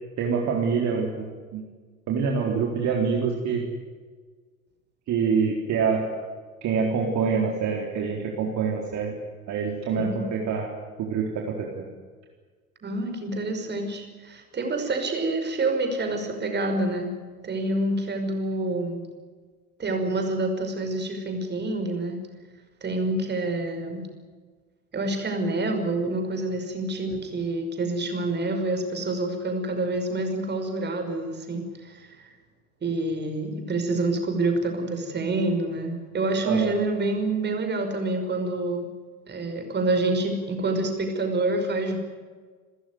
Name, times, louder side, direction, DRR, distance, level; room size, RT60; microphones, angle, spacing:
voice 1, 0.2-1.3 1.5-1.6 2.1-3.6 5.1-6.1 6.6-9.1 9.5-10.7 11.0-11.9 36.4-36.7, right 5 dB, 40° right, 0 dB, 4.1 m, -25 dB
voice 2, 9.9-10.2 12.8-17.1 17.4-19.0 19.8-22.2 22.8-24.0 24.9-32.1 32.8-38.9 39.3-42.0, right 2 dB, 25° right, 5 dB, 5.6 m, -27 dB
28.5 x 15.0 x 9.7 m, 1.5 s
figure-of-eight pair, 75°, 43 cm